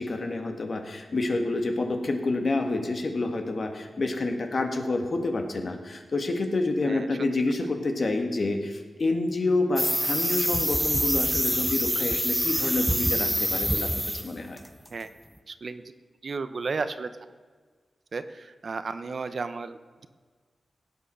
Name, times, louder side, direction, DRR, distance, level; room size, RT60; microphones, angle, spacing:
voice 1, 0.0-14.6, left 2 dB, 50° left, 4 dB, 1.8 m, -28 dB
sound 1, 9.8-14.3 14.6-14.9, equal, 5° right, 0.9 m, -26 dB
voice 2, 15.5-15.8 16.2-17.2 18.1-20.1, right 4 dB, 55° right, 11 dB, 0.7 m, -33 dB
17.0 x 9.1 x 6.4 m, 1.5 s
wide cardioid pair, 100°, 0 cm